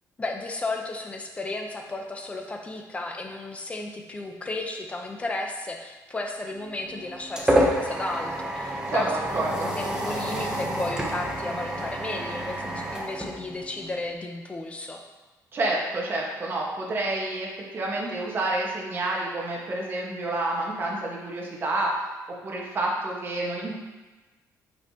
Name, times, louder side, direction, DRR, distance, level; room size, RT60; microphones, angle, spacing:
voice 1, 0.2-15.0, left 2 dB, 20° left, 2 dB, 0.8 m, -34 dB
sound 1, 6.6-14.0, right 1 dB, 10° right, 0.9 m, -28 dB
voice 2, 8.9-9.7 15.5-22.0 22.4-23.7, right 2 dB, 35° right, -3 dB, 1.5 m, -29 dB
7.9 x 5.6 x 2.9 m, 1.2 s
cardioid pair, 140°, 7 cm